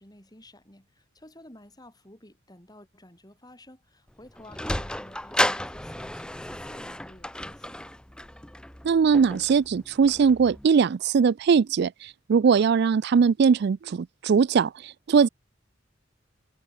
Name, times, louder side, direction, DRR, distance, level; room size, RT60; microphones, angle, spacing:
voice 1, 0.0-7.8, left 1 dB, 20° left, 7.7 m, -52 dB
Sliding door, 4.1-10.7, left 1 dB, 5° left, 0.8 m, -33 dB
voice 2, 8.8-15.3, right 6 dB, 55° right, 0.3 m, -21 dB
head